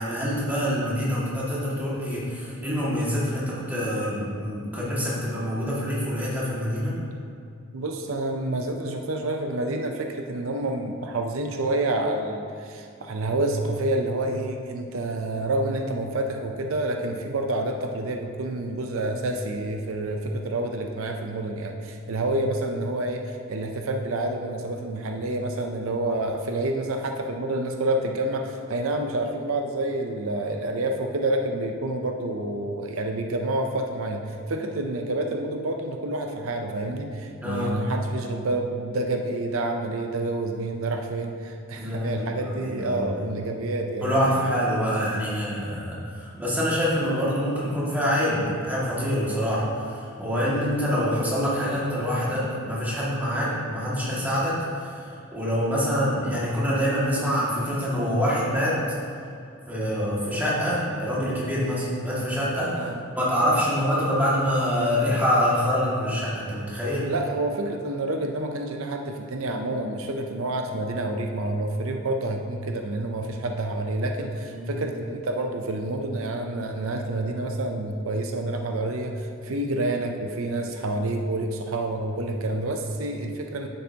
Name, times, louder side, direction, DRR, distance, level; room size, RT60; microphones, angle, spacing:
voice 1, 0.0-6.9 37.4-37.8 41.8-43.2 44.0-58.8 59.7-62.9 63.2-67.1 74.5-74.7, equal, 10° right, -8 dB, 2.0 m, -26 dB
voice 2, 7.7-44.1 62.7-63.0 67.1-83.7, right 2 dB, 80° right, 4 dB, 0.6 m, -28 dB
9.8 x 7.7 x 2.9 m, 2.4 s
head